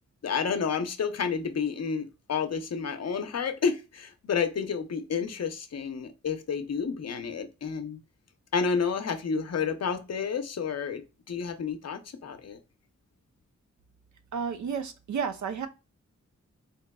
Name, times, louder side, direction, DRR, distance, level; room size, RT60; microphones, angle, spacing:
voice 1, 0.2-8.0 8.5-12.6, left 6 dB, 60° left, 0.6 m, -30 dB
voice 2, 14.3-15.7, right 6 dB, 80° right, 0.5 m, -31 dB
3.8 x 2.9 x 2.2 m
cardioid pair, 60°, 29 cm